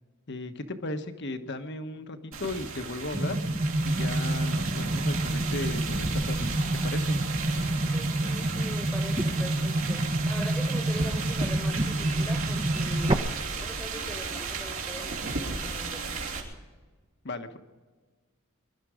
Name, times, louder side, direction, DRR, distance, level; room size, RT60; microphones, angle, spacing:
voice 1, 0.3-3.4 3.8-7.2 17.2-17.6, left 2 dB, 55° left, 8 dB, 1.3 m, -36 dB
sound 1, 2.3-16.4, right 4 dB, 70° right, 3.2 m, -35 dB
sound 2, 3.1-13.1, right 1 dB, 25° right, 0.9 m, -28 dB
voice 2, 7.9-13.3 13.6-16.6, equal, 5° left, 6 dB, 1.4 m, -42 dB
23.5 x 12.0 x 5.0 m, 1.4 s
head